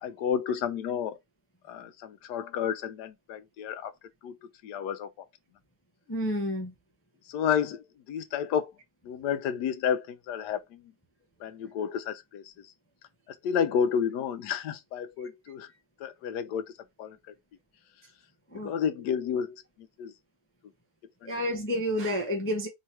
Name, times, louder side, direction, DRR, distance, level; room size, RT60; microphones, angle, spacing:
voice 1, 0.0-1.2 1.7-3.9 4.2-4.4 4.6-5.3 7.3-8.7 9.0-10.8 11.4-12.7 13.3-15.7 16.0-16.7 17.0-17.2 18.6-20.1 21.2-21.4, left 8 dB, 80° left, 1.2 m, -31 dB
voice 2, 6.1-6.7 18.5-18.7 21.2-22.7, equal, 15° left, 0.5 m, -29 dB
3.6 x 2.9 x 4.4 m
omnidirectional pair, 1.8 m